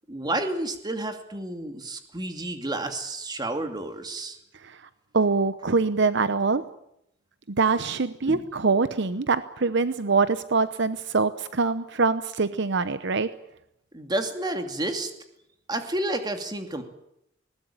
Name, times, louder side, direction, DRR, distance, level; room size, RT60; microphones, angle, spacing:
voice 1, 0.1-4.4 8.3-8.5 13.9-15.1 15.7-16.8, right 1 dB, 20° right, 6 dB, 2.6 m, -30 dB
voice 2, 5.1-6.6 7.5-13.3, right 4 dB, 65° right, 13 dB, 0.9 m, -24 dB
21.0 x 19.0 x 9.0 m, 0.78 s
head